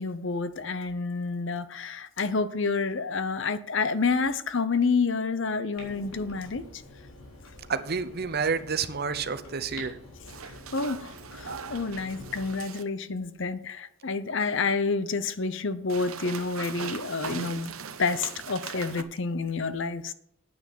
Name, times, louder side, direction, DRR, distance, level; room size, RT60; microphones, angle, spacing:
voice 1, 0.0-6.6 10.7-17.7 18.0-20.1, left 4 dB, 60° left, 14 dB, 0.8 m, -29 dB
Clock, 5.8-12.5, left 1 dB, 85° left, 3.8 m, -47 dB
voice 2, 7.7-10.0, right 5 dB, 45° right, 12 dB, 0.7 m, -29 dB
sound 1, 10.3-12.8 15.9-19.0, right 6 dB, 80° right, 0.9 m, -40 dB
9.3 x 9.0 x 5.5 m, 0.72 s
head